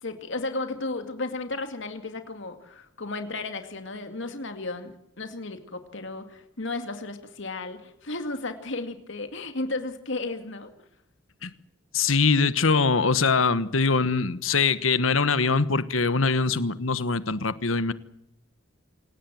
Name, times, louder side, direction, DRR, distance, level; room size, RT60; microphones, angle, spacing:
voice 1, 0.0-10.7, left 2 dB, 65° left, 7 dB, 2.3 m, -34 dB
voice 2, 11.9-17.9, left 4 dB, 80° left, 14 dB, 1.3 m, -23 dB
27.0 x 17.5 x 7.7 m, 0.77 s
head